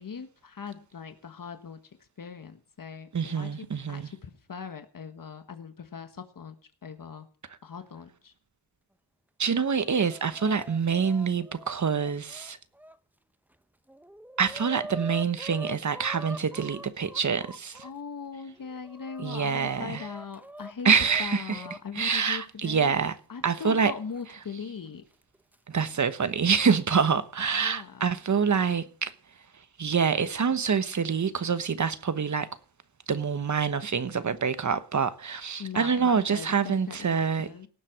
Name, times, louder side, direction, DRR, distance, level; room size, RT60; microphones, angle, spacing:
voice 1, 0.0-6.6 6.8-7.3 7.6-8.3 17.8-23.0 23.3-25.1 27.5-28.0 35.6-37.7, left 6 dB, 55° left, 1.5 m, -40 dB
voice 2, 3.1-4.1 9.4-12.6 14.4-17.8 19.2-20.1 20.8-21.6 21.9-23.2 23.4-23.9 25.7-29.1 29.8-32.5 33.1-37.5, right 6 dB, 45° right, 1.2 m, -26 dB
Chicken rooster, 9.5-13.0 13.5-13.6 13.9-17.9 18.5-21.8 23.0-23.1 24.1-24.2 25.2-25.6, right 1 dB, 5° right, 0.8 m, -44 dB
18.0 x 7.6 x 6.2 m
wide cardioid pair, 100°, 41 cm